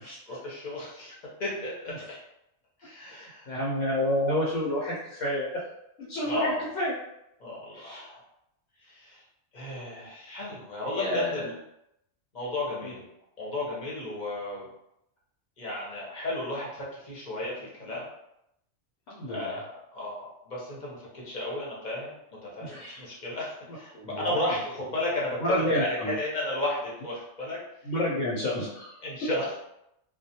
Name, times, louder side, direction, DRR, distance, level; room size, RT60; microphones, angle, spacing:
voice 1, 0.3-1.1 1.4-1.9 2.8-3.5 6.3-6.7 7.4-8.2 8.8-9.2 9.5-11.5 12.3-13.1 13.4-14.6 15.6-18.1 19.3-22.1 22.4-27.6 29.0-29.5, left 1 dB, 40° left, -5 dB, 0.8 m, -33 dB
voice 2, 3.0-5.6 6.0-6.9 7.7-8.0 10.0-10.1 10.8-11.6 12.8-12.9 19.1-19.6 22.6-23.0 23.9-24.4 25.4-26.1 27.8-29.0, left 1 dB, 80° left, -5 dB, 1.0 m, -30 dB
2.4 x 2.1 x 2.7 m, 0.81 s
omnidirectional pair, 1.3 m